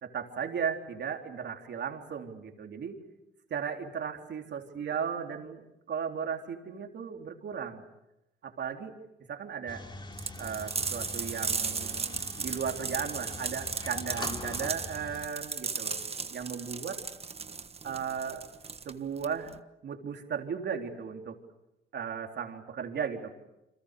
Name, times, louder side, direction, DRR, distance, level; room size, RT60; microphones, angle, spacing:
voice 1, 0.0-3.0 3.5-7.8 8.4-9.0 9.3-9.9 10.4-16.0 16.3-17.0 17.8-18.4 18.9-19.5 19.8-21.4 21.9-23.3, right 7 dB, 60° right, 3 dB, 3.8 m, -36 dB
sound 1, 9.7-15.3, left 2 dB, 25° left, 3.1 m, -43 dB
sound 2, 10.2-19.6, right 5 dB, 30° right, 1.5 m, -36 dB
29.0 x 26.0 x 6.7 m, 0.90 s
cardioid pair, 90°, 20 cm